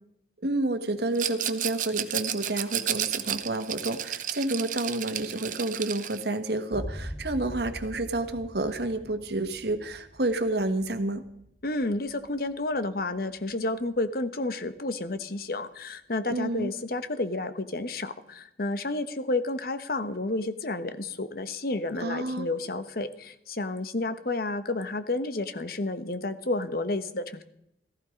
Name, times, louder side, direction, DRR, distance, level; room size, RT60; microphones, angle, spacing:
voice 1, 0.4-11.2 16.3-16.7 22.0-22.5, right 2 dB, 65° right, 9 dB, 1.4 m, -29 dB
Rattle, 1.1-6.2, right 10 dB, 45° right, 0.8 m, -32 dB
sound 1, 6.7-14.1, equal, 5° right, 3.8 m, -43 dB
voice 2, 11.6-27.4, left 2 dB, 55° left, 11 dB, 1.1 m, -31 dB
15.5 x 15.0 x 5.2 m, 0.77 s
head